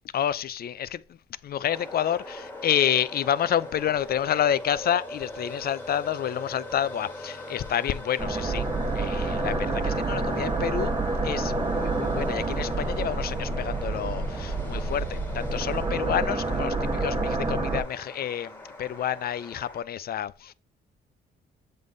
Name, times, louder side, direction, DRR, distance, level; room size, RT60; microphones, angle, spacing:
voice 1, 0.1-8.7 8.9-10.9 11.2-20.5, left 10 dB, 50° left, 0.4 m, -29 dB
sound 1, 1.7-19.8, left 1 dB, 10° left, 1.6 m, -41 dB
sound 2, 8.2-17.8, right 3 dB, 20° right, 1.1 m, -28 dB
7.8 x 3.7 x 3.8 m
cardioid pair, 90°, 20 cm